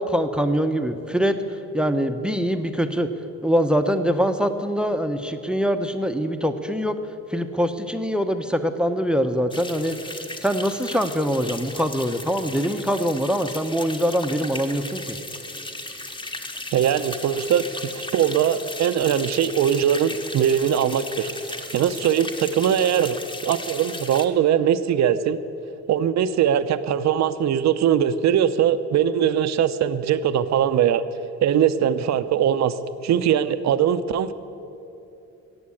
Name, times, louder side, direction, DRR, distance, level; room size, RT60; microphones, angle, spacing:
voice 1, 0.0-3.1 3.4-7.0 7.3-10.0 10.4-15.2, equal, 5° right, 8 dB, 0.8 m, -23 dB
sound 1, 9.5-24.3, left 2 dB, 15° left, 1.0 m, -36 dB
voice 2, 16.7-17.7 17.9-23.2 23.4-25.4 25.9-31.0 31.4-32.8 33.0-34.3, right 9 dB, 65° right, 12 dB, 0.7 m, -21 dB
14.5 x 8.6 x 8.5 m, 2.8 s
cardioid pair, 90°, 30 cm